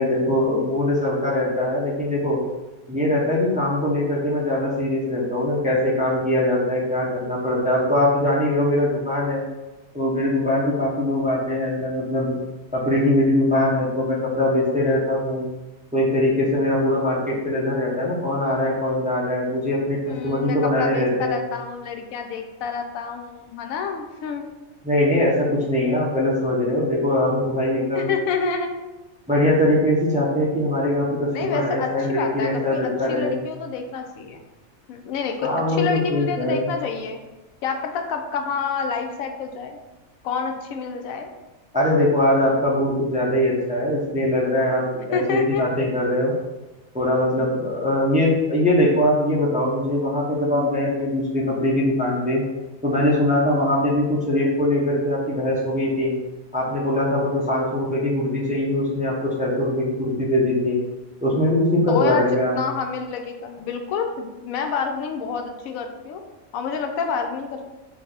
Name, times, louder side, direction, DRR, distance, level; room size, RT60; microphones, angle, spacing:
voice 1, 0.0-2.4 2.9-9.4 9.9-12.4 12.7-15.4 15.9-21.4 24.8-28.1 29.3-33.4 35.4-36.7 41.7-46.3 46.9-52.4 52.8-56.1 56.5-60.8 61.2-62.5, left 1 dB, 5° right, -5 dB, 0.7 m, -22 dB
voice 2, 20.1-24.5 27.9-28.8 31.3-32.8 33.1-34.4 34.9-37.2 37.6-39.8 40.2-41.3 45.1-45.7 61.9-62.3 62.5-66.2 66.5-67.6, left 5 dB, 85° left, 4 dB, 1.0 m, -28 dB
4.8 x 2.6 x 3.9 m, 1.1 s
omnidirectional pair, 1.4 m